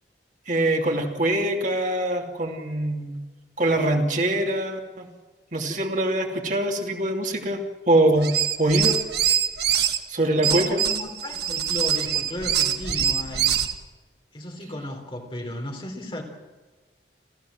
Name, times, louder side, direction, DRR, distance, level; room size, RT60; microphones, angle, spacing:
voice 1, 0.5-3.2 3.6-5.1 5.5-7.6 7.9-9.0 10.1-10.8, right 1 dB, 45° right, 2 dB, 2.7 m, -23 dB
sound 1, 8.2-10.0 10.4-13.7, right 9 dB, 65° right, 1.9 m, -24 dB
voice 2, 10.4-13.5 14.3-16.2, left 1 dB, 30° left, 2 dB, 3.8 m, -34 dB
29.5 x 15.0 x 7.6 m, 1.3 s
head